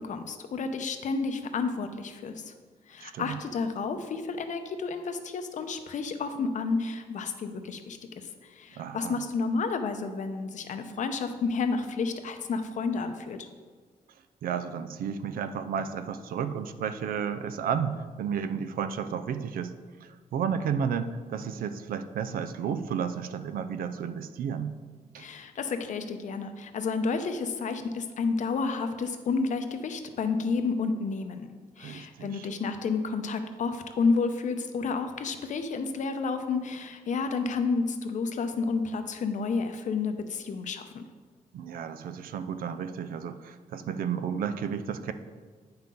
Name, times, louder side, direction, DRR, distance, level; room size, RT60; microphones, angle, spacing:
voice 1, 0.0-2.5 2.9-13.5 25.2-31.4 31.8-41.1, left 4 dB, 60° left, 8 dB, 0.7 m, -31 dB
voice 2, 3.0-3.4 8.8-9.2 14.4-19.7 20.0-24.7 25.1-25.3 31.8-32.5 41.5-45.1, right 7 dB, 80° right, 11 dB, 0.5 m, -32 dB
8.7 x 5.7 x 3.8 m, 1.5 s
cardioid pair, 110°, 15 cm